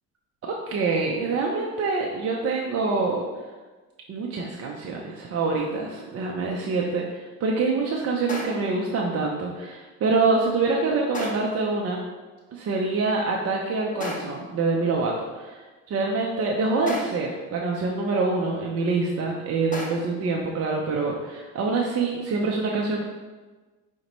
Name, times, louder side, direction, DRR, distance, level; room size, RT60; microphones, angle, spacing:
voice 1, 0.4-3.2 4.1-12.0 12.5-23.0, right 3 dB, 40° right, -1 dB, 0.5 m, -26 dB
sound 1, 5.6-6.0 8.3-8.9 11.1-11.7 14.0-14.6 16.9-17.4 19.7-20.3, left 1 dB, 20° left, 0.7 m, -35 dB
4.8 x 2.2 x 2.9 m, 1.3 s
supercardioid pair, 80°, 38 cm